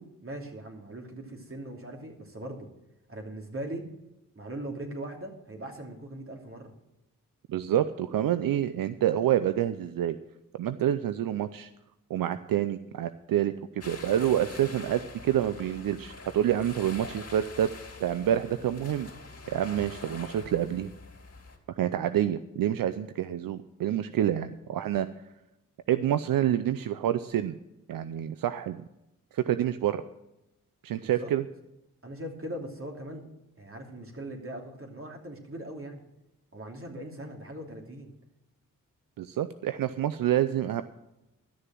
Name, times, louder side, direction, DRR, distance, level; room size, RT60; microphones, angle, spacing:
voice 1, 0.0-2.7 3.1-3.8 4.3-6.7 31.0-31.3 32.0-33.2 33.6-36.0 36.5-38.1, right 1 dB, 40° right, 2 dB, 2.9 m, -40 dB
voice 2, 7.5-10.2 10.6-11.7 12.1-17.7 18.0-19.1 19.5-20.9 21.8-25.1 25.9-27.6 27.9-28.8 29.3-30.0 30.8-31.4 39.2-40.8, right 11 dB, 85° right, 12 dB, 0.5 m, -27 dB
sound 1, 13.8-21.6, left 3 dB, 45° left, 3.0 m, -45 dB
13.0 x 6.8 x 7.6 m, 0.91 s
cardioid pair, 50°, 33 cm